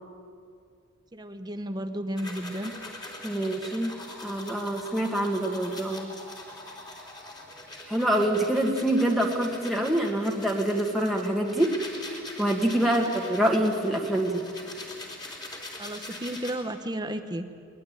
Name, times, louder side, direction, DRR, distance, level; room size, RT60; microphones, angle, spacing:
voice 1, 1.1-2.7 12.8-13.1 15.8-17.5, right 1 dB, 20° right, 8 dB, 1.0 m, -33 dB
sound 1, 2.2-16.5, left 2 dB, 20° left, 3.4 m, -42 dB
voice 2, 3.2-3.9 4.2-6.1 7.9-11.7 12.1-14.4, right 1 dB, ahead, -2 dB, 1.9 m, -26 dB
22.0 x 21.0 x 9.1 m, 2.3 s
head